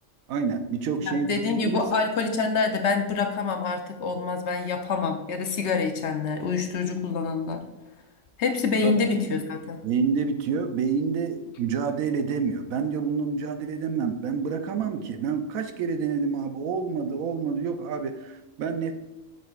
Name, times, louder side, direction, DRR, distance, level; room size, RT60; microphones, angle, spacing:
voice 1, 0.3-1.8 8.8-8.9 9.8-18.9, right 5 dB, 80° right, 8 dB, 1.1 m, -28 dB
voice 2, 1.0-7.6 8.4-9.8, left 4 dB, 60° left, 5 dB, 0.9 m, -26 dB
7.4 x 5.8 x 2.4 m, 1.1 s
omnidirectional pair, 1.4 m